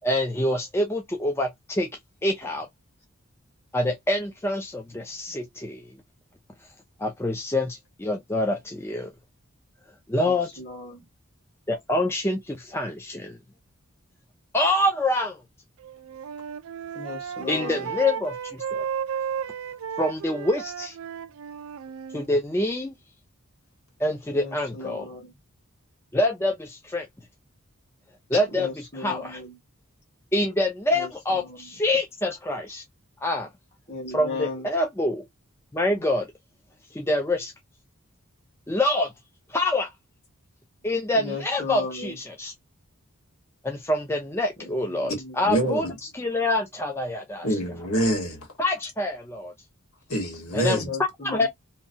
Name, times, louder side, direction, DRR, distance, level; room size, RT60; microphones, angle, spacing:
voice 1, 0.0-1.9 2.2-2.7 3.7-6.0 7.0-9.1 10.1-10.5 11.7-13.4 14.5-15.4 17.5-18.9 20.0-21.0 22.1-22.9 24.0-25.1 26.1-27.1 28.3-28.7 29.0-29.4 30.3-32.8 33.2-33.5 34.1-35.2 35.7-36.3 36.9-37.5 38.7-39.1 39.5-39.9 40.8-42.5 43.6-45.9 46.1-47.5 48.6-49.5 50.5-50.8 51.2-51.5, left 1 dB, 10° left, 0.4 m, -26 dB
voice 2, 10.2-11.0 16.9-17.9 24.3-25.3 28.5-29.6 30.9-31.7 33.9-34.7 41.1-42.2 44.6-45.4 50.7-51.5, left 3 dB, 30° left, 1.5 m, -36 dB
Wind instrument woodwind instrument, 15.8-22.3, right 8 dB, 75° right, 0.4 m, -34 dB
voice 3, 45.4-45.9 47.4-48.5 50.1-50.9, right 1 dB, 85° left, 1.5 m, -25 dB
2.9 x 2.3 x 2.7 m
head